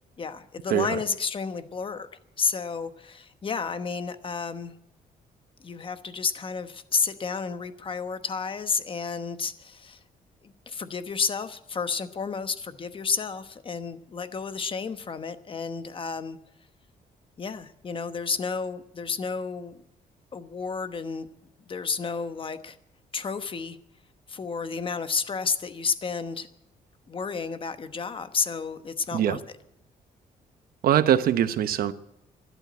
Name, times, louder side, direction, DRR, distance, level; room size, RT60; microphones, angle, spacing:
voice 1, 0.2-2.1 2.4-4.7 5.6-10.0 10.4-16.4 17.4-19.8 20.3-21.3 21.7-22.8 23.1-23.8 24.3-26.5 27.1-29.4, left 5 dB, 35° left, 1.1 m, -31 dB
voice 2, 30.8-31.9, right 10 dB, 75° right, 0.9 m, -22 dB
12.5 x 11.5 x 9.5 m
cardioid pair, 115°, 15 cm